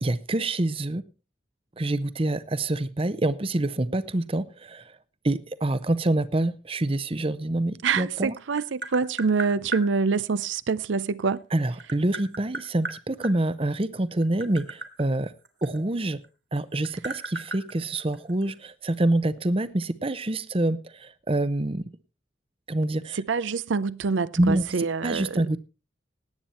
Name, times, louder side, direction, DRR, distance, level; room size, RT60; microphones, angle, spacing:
voice 1, 0.0-1.0 1.8-4.9 5.2-8.4 11.5-15.3 15.6-16.2 16.5-21.8 22.7-23.2 24.4-25.6, right 1 dB, 30° right, 0.7 m, -26 dB
voice 2, 7.8-11.4 23.2-25.4, right 5 dB, 75° right, 0.5 m, -26 dB
Tap, 8.0-9.9 11.2-13.3 14.1-16.3 16.6-18.6, right 2 dB, 60° right, 2.2 m, -36 dB
18.0 x 8.9 x 4.3 m
head